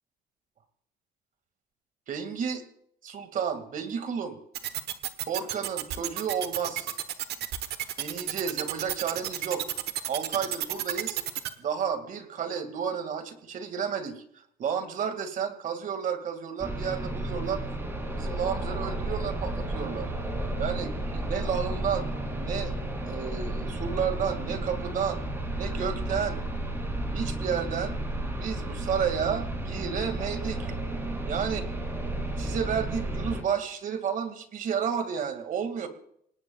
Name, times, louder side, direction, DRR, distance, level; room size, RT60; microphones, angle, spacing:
voice 1, 2.1-2.6 3.0-4.4 5.2-7.0 8.0-9.7 10.1-11.2 11.6-14.2 14.6-17.6 18.2-20.1 20.6-22.7 23.0-25.2 25.6-26.4 27.1-28.0 28.4-30.7 31.3-31.6 32.4-35.9, right 7 dB, 55° right, 8 dB, 2.2 m, -31 dB
sound 1, 4.5-11.5, right 13 dB, 75° right, 1.2 m, -31 dB
sound 2, 16.6-33.4, right 1 dB, 15° right, 2.8 m, -32 dB
27.5 x 18.5 x 2.4 m, 0.69 s
cardioid pair, 110°, 17 cm